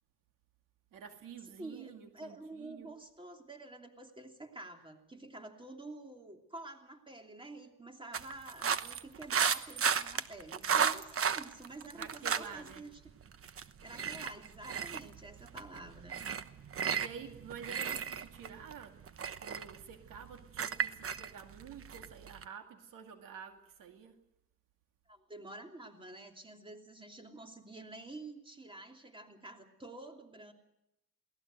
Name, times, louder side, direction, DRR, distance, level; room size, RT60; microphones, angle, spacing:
voice 1, 0.9-2.9 11.9-12.8 17.0-19.0 19.4-24.2, right 7 dB, 80° right, 6 dB, 2.3 m, -49 dB
voice 2, 1.6-12.9 13.6-16.2 25.1-30.5, right 2 dB, 15° right, 4 dB, 3.0 m, -49 dB
sound 1, 8.1-12.8 13.1-22.4, right 7 dB, 45° right, 1.1 m, -34 dB
22.5 x 17.5 x 8.0 m, 0.87 s
cardioid pair, 80°, 32 cm